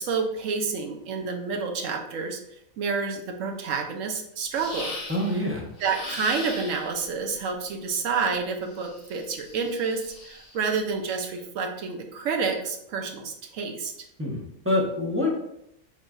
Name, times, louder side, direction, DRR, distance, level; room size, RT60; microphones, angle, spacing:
voice 1, 0.0-2.4 2.8-4.9 5.3-5.4 5.8-13.9, right 5 dB, 70° right, 3 dB, 1.0 m, -29 dB
sound 1, 4.5-5.4 5.8-7.0 8.7-10.6, left 2 dB, 20° left, 0.7 m, -39 dB
voice 2, 5.1-5.7 14.2-15.3, left 1 dB, 15° right, -3 dB, 0.5 m, -26 dB
5.1 x 3.1 x 2.3 m, 0.76 s
omnidirectional pair, 1.4 m